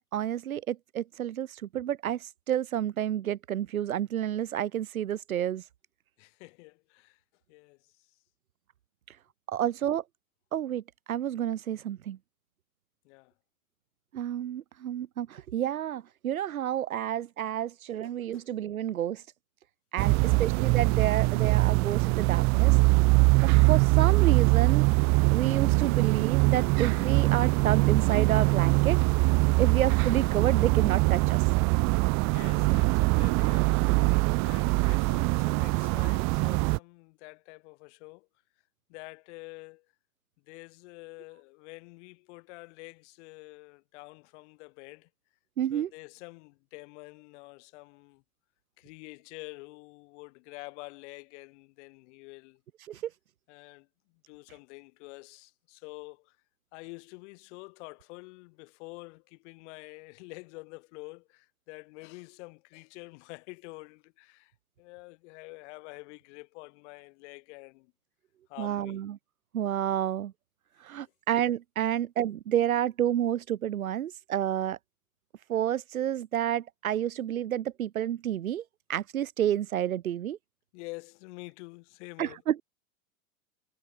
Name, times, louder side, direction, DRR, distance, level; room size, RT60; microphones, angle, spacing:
voice 1, 0.0-5.6 9.5-10.0 10.5-12.2 14.1-19.2 19.9-22.8 23.4-24.9 25.3-29.0 29.6-31.4 45.6-45.9 52.9-53.1 68.6-69.2 69.5-70.3 70.8-74.8 75.5-78.6 78.9-80.4 82.2-82.6, right 11 dB, 90° right, 2.6 m, -30 dB
voice 2, 6.2-7.2 7.5-7.8 13.0-13.3 18.3-18.5 20.1-20.4 31.9-38.3 38.9-39.9 40.5-45.1 45.7-48.2 48.8-52.6 53.5-53.9 54.3-56.4 56.7-64.5 64.8-67.9 68.5-69.1 80.7-82.4, left 26 dB, 55° left, 7.0 m, -47 dB
sound 1, 20.0-36.8, right 28 dB, 40° right, 1.1 m, -23 dB
hypercardioid pair, 125°, 41 cm